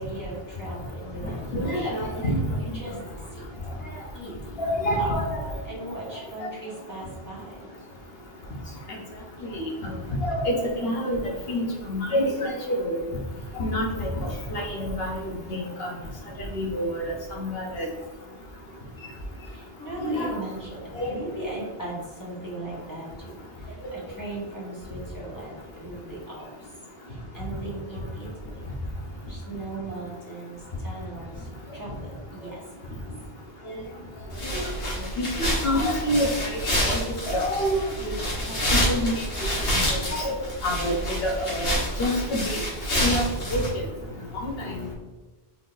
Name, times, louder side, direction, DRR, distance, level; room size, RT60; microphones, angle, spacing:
voice 1, 0.0-2.1 2.5-3.0 3.3-3.5 4.1-4.3 5.0-5.1 5.6-7.7 19.4-26.7 27.1-28.6 29.3-33.0 43.9-44.9, right 1 dB, 20° left, -7 dB, 1.2 m, -38 dB
voice 2, 1.5-2.4 4.6-5.3 9.5-9.7 10.2-11.2 11.5-11.6 11.9-13.0 13.6-14.1 14.5-15.1 15.8-15.9 16.5-17.1 17.4-17.9 20.0-20.3 20.9-21.1 35.2-36.3 36.8-37.0 37.2-37.8 38.7-39.1 39.9-40.3 40.6-41.7 42.0-42.6 43.0-43.2 43.5-43.6, equal, 65° left, -1 dB, 1.1 m, -26 dB
sound 1, 34.3-43.7, equal, 85° left, 1.6 m, -28 dB
4.0 x 3.7 x 2.6 m, 1.2 s
omnidirectional pair, 1.1 m